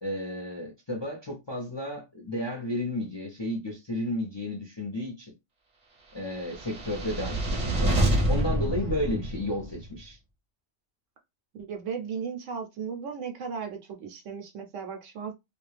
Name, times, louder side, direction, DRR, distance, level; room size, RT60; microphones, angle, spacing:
voice 1, 0.0-5.3 6.1-8.0 8.3-10.2, left 1 dB, 30° left, 0.5 m, -32 dB
sound 1, 6.4-9.8, right 1 dB, 35° right, 0.8 m, -27 dB
voice 2, 11.5-15.3, right 6 dB, 70° right, 1.0 m, -36 dB
2.5 x 2.3 x 3.2 m
omnidirectional pair, 1.4 m